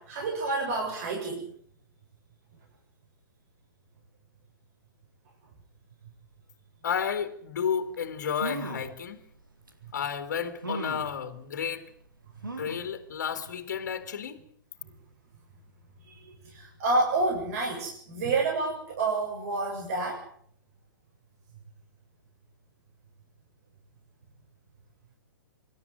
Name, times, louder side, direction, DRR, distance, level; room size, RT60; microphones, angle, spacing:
voice 1, 0.0-1.5 16.2-20.2, right 3 dB, 45° right, 7.4 m, -29 dB
voice 2, 6.8-9.2 9.9-11.9 12.6-14.4, left 7 dB, 60° left, 2.6 m, -32 dB
sound 1, 7.9-8.0 8.3-8.9 9.7-9.8 10.6-11.1 12.4-12.9 13.4-13.5 13.8-13.9, right 2 dB, 85° right, 4.1 m, -36 dB
25.5 x 12.5 x 9.5 m
figure-of-eight pair, 120°, 11 cm